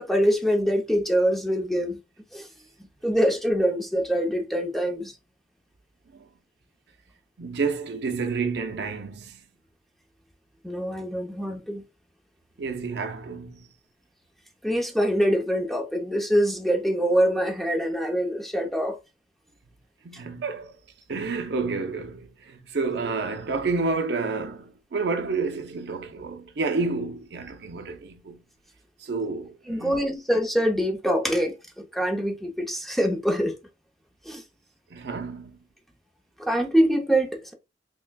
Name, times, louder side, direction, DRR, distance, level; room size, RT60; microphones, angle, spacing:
voice 1, 0.0-2.0 2.3-2.5 3.0-5.1 10.6-11.8 14.6-19.0 29.7-33.5 34.2-34.4 36.4-37.5, equal, ahead, 0.6 m, -24 dB
voice 2, 7.4-9.4 12.6-13.7 20.0-20.8 21.1-28.4 29.0-30.0 34.9-35.6, right 4 dB, 65° right, 0.5 m, -30 dB
5.9 x 2.1 x 2.3 m
head